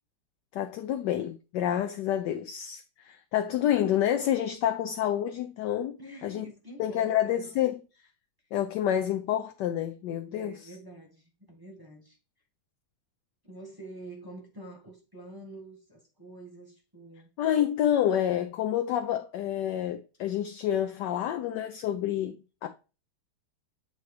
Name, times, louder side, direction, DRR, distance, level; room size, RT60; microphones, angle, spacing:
voice 1, 0.5-6.5 6.8-7.8 8.5-10.7 17.4-22.7, left 11 dB, 70° left, 1.1 m, -28 dB
voice 2, 6.0-7.5 10.3-12.2 13.4-17.3, right 1 dB, 15° right, 1.1 m, -47 dB
8.2 x 3.0 x 4.7 m
omnidirectional pair, 2.2 m